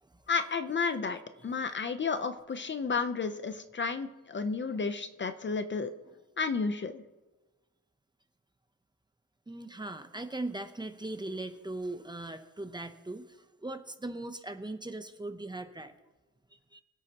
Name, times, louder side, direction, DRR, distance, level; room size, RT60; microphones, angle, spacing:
voice 1, 0.3-5.9 6.4-7.0, left 5 dB, 35° left, 9 dB, 0.6 m, -32 dB
voice 2, 9.5-15.9 16.5-16.8, right 2 dB, 15° right, 8 dB, 0.7 m, -40 dB
23.5 x 8.2 x 2.9 m, 1.2 s
wide cardioid pair, 150°, 33 cm